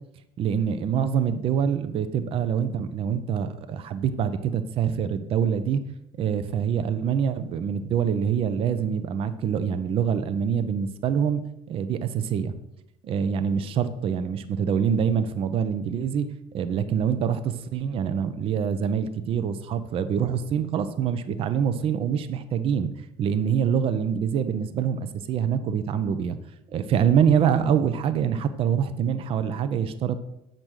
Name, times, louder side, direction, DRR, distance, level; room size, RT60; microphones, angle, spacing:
voice 1, 0.4-5.8 6.2-11.4 11.7-12.5 13.0-16.3 16.5-22.9 23.2-26.4 26.7-30.1, right 8 dB, 45° right, 11 dB, 0.6 m, -25 dB
7.5 x 5.2 x 6.2 m, 0.84 s
cardioid pair, 145°, 14 cm